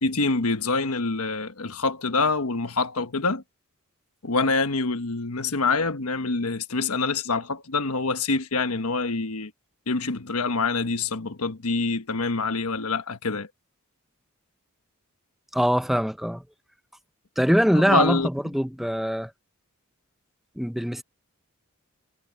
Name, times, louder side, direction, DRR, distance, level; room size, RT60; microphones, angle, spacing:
voice 1, 0.0-3.4 4.2-9.5 9.9-13.5 17.9-18.3, left 3 dB, 80° left, 1.3 m, -26 dB
voice 2, 15.5-16.4 17.4-19.3 20.6-21.0, equal, ahead, 0.7 m, -23 dB
head